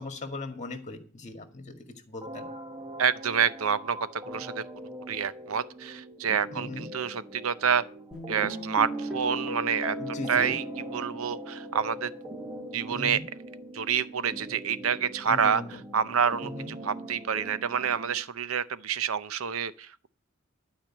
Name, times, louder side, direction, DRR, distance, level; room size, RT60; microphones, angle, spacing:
voice 1, 0.0-1.8 2.1-2.5 6.5-6.9 10.0-10.5 12.9-13.2 15.3-15.8 16.4-16.7, left 2 dB, 35° left, 2.0 m, -38 dB
sound 1, 2.2-18.2, right 1 dB, 20° right, 1.0 m, -43 dB
voice 2, 3.0-4.6 5.1-7.8 8.3-10.6 10.9-12.1 12.7-13.2 13.7-15.6 15.9-20.1, right 7 dB, 75° right, 0.6 m, -28 dB
Guitar, 8.1-13.2, equal, 5° right, 2.5 m, -38 dB
12.0 x 5.0 x 8.7 m
head